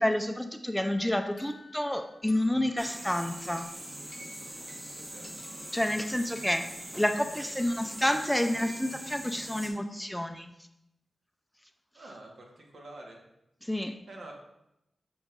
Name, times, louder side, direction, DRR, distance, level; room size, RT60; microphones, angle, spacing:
voice 1, 0.0-3.7 5.7-6.6 7.0-10.5 13.6-14.0, left 1 dB, 5° left, 7 dB, 0.3 m, -29 dB
sound 1, 1.1-9.5, left 2 dB, 40° left, 0.7 m, -53 dB
sound 2, 2.8-9.7, right 1 dB, 20° right, 0.8 m, -43 dB
voice 2, 4.7-5.3 11.9-13.2 14.1-14.3, right 2 dB, 80° right, -1 dB, 1.3 m, -48 dB
6.3 x 6.0 x 2.5 m, 0.85 s
wide cardioid pair, 130°, 0 cm